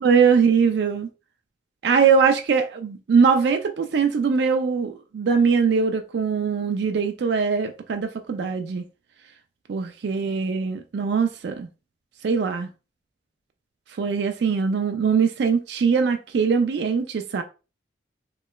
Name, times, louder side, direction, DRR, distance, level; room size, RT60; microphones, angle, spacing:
voice 1, 0.0-1.1 1.8-8.8 9.7-11.7 12.2-12.7 14.0-17.4, right 5 dB, 60° right, 0.3 m, -21 dB
3.1 x 2.9 x 2.2 m
head